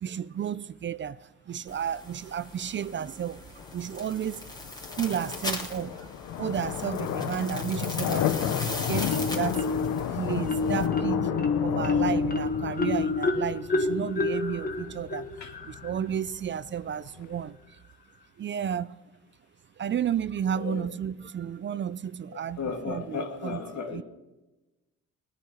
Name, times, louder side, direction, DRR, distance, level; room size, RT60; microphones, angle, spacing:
voice 1, 0.0-3.4 3.7-4.5 4.9-6.1 6.4-8.3 8.6-9.6 10.1-15.3 15.6-17.8 18.4-18.9 19.8-23.6 23.9-24.0, right 8 dB, 40° right, 0.4 m, -32 dB
sound 1, 1.7-10.9, left 1 dB, 15° left, 3.0 m, -40 dB
sound 2, 3.6-17.5, left 10 dB, 90° left, 1.0 m, -33 dB
Marimba xylophone, 9.1-10.0 10.5-16.0, left 3 dB, 30° left, 1.6 m, -28 dB
voice 2, 20.5-20.8 22.3-24.0, left 5 dB, 65° left, 2.4 m, -35 dB
19.5 x 9.4 x 5.8 m
cardioid pair, 90°, 30 cm